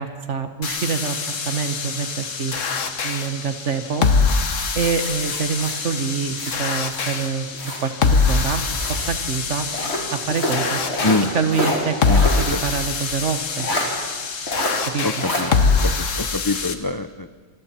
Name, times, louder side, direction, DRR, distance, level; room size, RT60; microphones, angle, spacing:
voice 1, 0.0-2.5 3.0-4.1 4.7-7.5 7.8-9.7 10.1-10.8 11.3-13.7 14.9-15.2, right 6 dB, 60° right, 8 dB, 1.6 m, -26 dB
sound 1, 0.6-16.7, left 4 dB, 65° left, 1.6 m, -24 dB
sound 2, 4.5-7.2 7.5-9.1 9.7-12.5 12.8-12.9 13.6-13.9 14.5-14.8 15.2-15.5, left 1 dB, 50° left, 3.5 m, -27 dB
sound 3, 8.7-9.1 9.8-10.7 11.8-11.9 12.4-12.7 13.1-13.4 13.8-13.9, equal, 30° right, 6.8 m, -39 dB
voice 2, 15.0-15.5 15.8-17.4, left 2 dB, 35° left, 9 dB, 0.3 m, -24 dB
27.5 x 24.0 x 4.4 m, 1.5 s
omnidirectional pair, 1.4 m